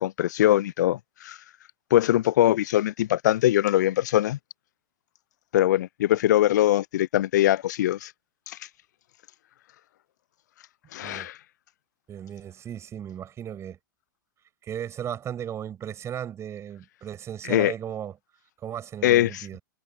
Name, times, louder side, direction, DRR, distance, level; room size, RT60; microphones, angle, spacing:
voice 1, 0.0-1.4 1.9-4.4 5.5-8.1 8.5-8.6 10.9-11.4 17.4-17.7 19.0-19.4, left 13 dB, 60° left, 0.7 m, -22 dB
voice 2, 11.0-11.3 12.1-13.8 14.6-18.2 18.6-19.6, right 9 dB, 25° right, 6.7 m, -36 dB
figure-of-eight pair, 100°, 11 cm